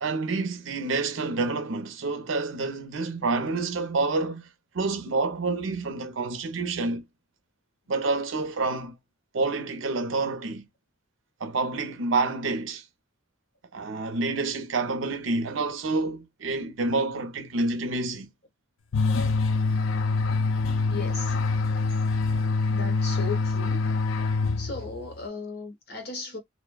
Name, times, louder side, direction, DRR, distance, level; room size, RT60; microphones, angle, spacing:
voice 1, 0.0-4.5 4.7-7.0 7.9-9.0 9.3-10.7 11.4-12.8 13.7-18.3, right 3 dB, 80° right, 0.6 m, -28 dB
sound 1, 18.9-25.1, left 3 dB, 90° left, 0.4 m, -25 dB
voice 2, 20.9-21.3 22.6-23.8 24.6-26.4, left 4 dB, 55° left, 1.0 m, -36 dB
2.5 x 2.2 x 2.2 m
head